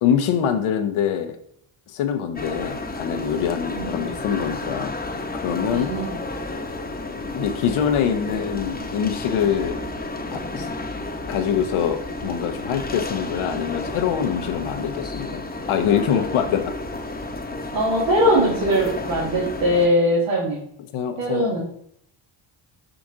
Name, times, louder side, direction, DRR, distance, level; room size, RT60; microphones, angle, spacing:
voice 1, 0.0-1.4 1.9-4.9 5.3-5.9 7.3-9.8 10.3-10.7 11.2-15.4 15.7-16.6 20.9-21.5, left 8 dB, 85° left, 7 dB, 1.0 m, -24 dB
sound 1, 2.4-19.9, left 2 dB, 20° left, 0.9 m, -31 dB
voice 2, 3.7-4.1 5.6-6.2 17.7-20.6 21.2-21.6, equal, 85° right, -6 dB, 2.1 m, -21 dB
6.0 x 5.1 x 3.7 m, 0.66 s
cardioid pair, 80°, 48 cm